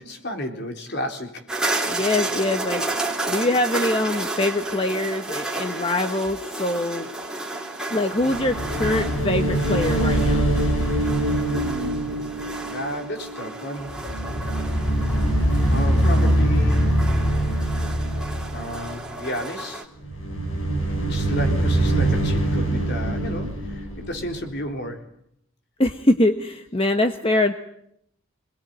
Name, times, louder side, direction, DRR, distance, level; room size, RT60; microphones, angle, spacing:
voice 1, 0.0-1.9 11.4-14.0 15.4-17.0 18.5-19.9 21.1-25.1, equal, 55° left, 4 dB, 3.8 m, -33 dB
sound 1, 1.5-19.8, right 2 dB, 5° right, 3.9 m, -32 dB
voice 2, 1.9-2.9 3.3-7.1 7.9-10.5 25.8-27.5, left 1 dB, 30° left, 6 dB, 1.3 m, -23 dB
sound 2, 8.2-13.5 13.8-19.1 20.0-24.9, right 1 dB, 80° left, 8.0 m, -23 dB
27.0 x 20.5 x 9.3 m, 0.75 s
head